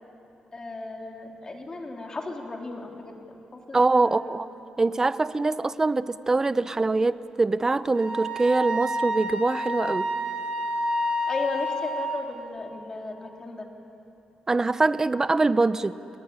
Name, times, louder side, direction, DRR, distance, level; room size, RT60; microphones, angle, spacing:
voice 1, 0.5-3.2 3.5-4.4 11.3-13.7, left 2 dB, 30° left, 1 dB, 3.6 m, -35 dB
voice 2, 3.7-4.5 4.8-10.1 14.5-15.9, right 3 dB, 25° right, 15 dB, 0.7 m, -23 dB
Wind instrument woodwind instrument, 7.9-12.1, equal, 80° right, 5.3 m, -29 dB
30.0 x 20.0 x 9.8 m, 2.9 s
cardioid pair, 105°, 2 cm